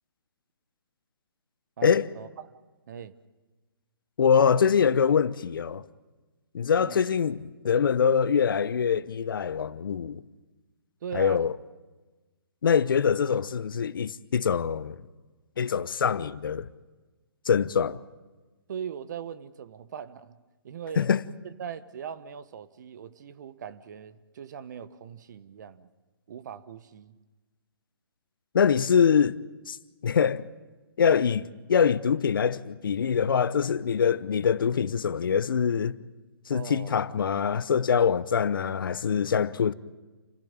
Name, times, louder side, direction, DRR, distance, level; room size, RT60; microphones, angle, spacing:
voice 1, 1.8-2.3 2.9-3.1 6.8-7.0 11.0-11.4 18.7-20.4 20.6-21.1 21.4-25.9 26.3-27.2 36.5-37.0, right 8 dB, 50° right, 1.2 m, -40 dB
voice 2, 4.2-5.8 6.5-10.2 11.1-11.6 12.6-15.0 15.6-16.7 17.5-18.0 21.0-21.2 28.5-29.4 29.7-29.8 30.0-30.5 31.0-36.0 36.5-39.7, left 7 dB, 60° left, 0.9 m, -24 dB
29.0 x 16.0 x 8.9 m
hypercardioid pair, 145°, 13 cm